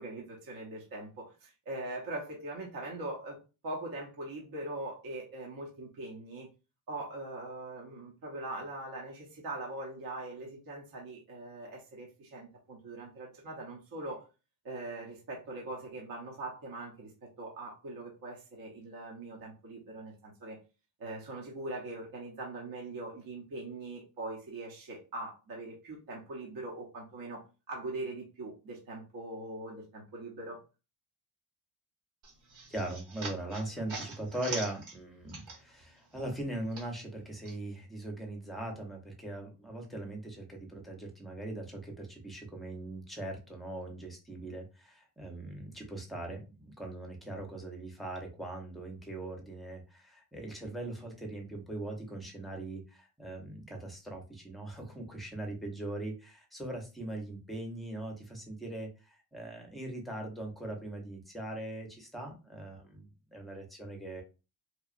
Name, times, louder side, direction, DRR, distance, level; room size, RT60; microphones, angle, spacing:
voice 1, 0.0-6.5 6.9-14.3 14.6-20.6 21.0-30.6, right 2 dB, 45° right, 0.9 m, -42 dB
sound 1, 32.2-35.9 36.2-37.6, right 3 dB, 75° right, 1.7 m, -43 dB
voice 2, 32.7-64.2, right 1 dB, ahead, 0.7 m, -40 dB
2.9 x 2.4 x 2.4 m
cardioid pair, 125°, 48 cm